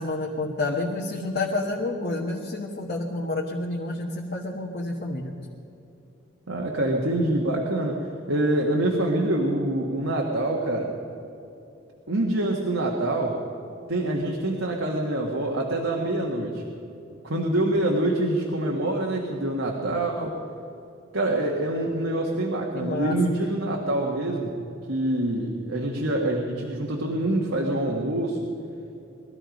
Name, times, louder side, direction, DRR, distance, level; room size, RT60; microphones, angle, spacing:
voice 1, 0.0-5.3 22.7-23.1, left 2 dB, 50° left, -2 dB, 1.4 m, -29 dB
voice 2, 6.5-10.9 12.1-13.4 13.9-16.6 17.2-20.4 21.1-24.5 24.9-28.4, right 1 dB, 80° right, -1 dB, 1.6 m, -25 dB
20.5 x 13.5 x 5.2 m, 2.9 s
head